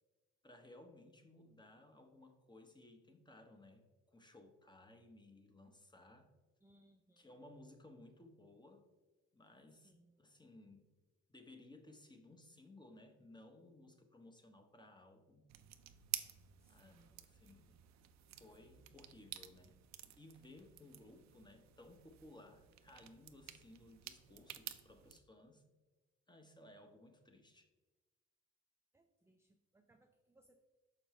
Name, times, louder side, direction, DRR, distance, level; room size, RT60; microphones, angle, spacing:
voice 1, 0.4-6.3 7.2-8.9 9.3-9.9 10.2-10.9 11.3-15.5 16.7-17.7 18.3-19.8 20.2-25.6 26.3-27.7, left 1 dB, 15° left, 5 dB, 0.9 m, -60 dB
voice 2, 6.6-7.3 9.8-10.1 16.6-17.2 28.9-30.6, right 1 dB, 10° right, 4 dB, 0.4 m, -70 dB
sound 1, 15.5-25.2, right 12 dB, 65° right, 0.5 m, -51 dB
6.4 x 5.3 x 3.1 m, 1.2 s
cardioid pair, 90°, 30 cm